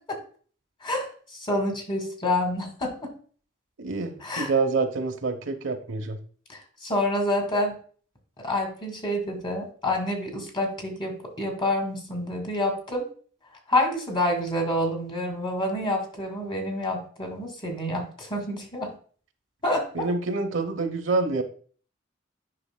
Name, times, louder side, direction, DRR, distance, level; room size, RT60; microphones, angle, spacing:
voice 1, 1.4-3.1 4.2-4.5 6.5-7.7 8.4-13.1 13.7-18.9 19.6-20.1, left 1 dB, 25° left, 2 dB, 2.1 m, -28 dB
voice 2, 3.8-6.2 19.9-21.4, right 3 dB, 90° right, 5 dB, 1.0 m, -27 dB
9.7 x 6.0 x 2.2 m, 0.43 s
head